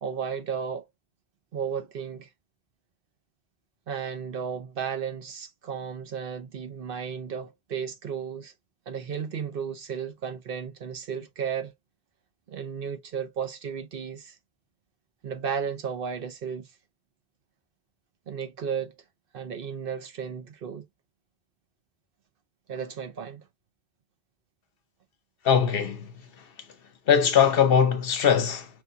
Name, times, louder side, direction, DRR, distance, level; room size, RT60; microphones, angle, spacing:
voice 1, 0.0-0.9 1.5-2.3 3.9-8.5 8.9-11.7 12.5-14.4 15.2-16.7 18.3-18.9 19.3-20.9 22.7-23.5, right 7 dB, 60° right, 0.9 m, -34 dB
voice 2, 25.4-26.1 27.1-28.7, left 7 dB, 65° left, 0.9 m, -21 dB
6.2 x 2.3 x 2.5 m
omnidirectional pair, 1.1 m